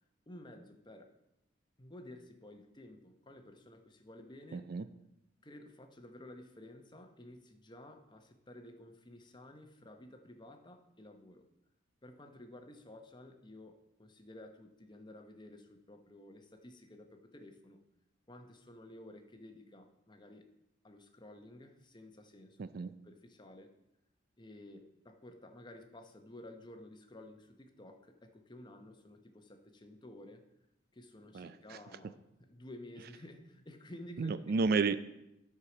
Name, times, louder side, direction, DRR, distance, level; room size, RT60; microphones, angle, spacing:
voice 1, 0.3-1.1 1.8-4.6 5.4-11.5 12.0-17.8 18.3-20.5 20.8-22.7 23.0-23.7 24.4-30.4 30.9-34.3, left 1 dB, 25° left, 5 dB, 0.9 m, -53 dB
voice 2, 4.5-4.8 22.6-22.9 31.3-31.8 34.2-35.0, right 4 dB, 50° right, 13 dB, 0.4 m, -32 dB
11.5 x 4.8 x 6.0 m, 0.87 s
head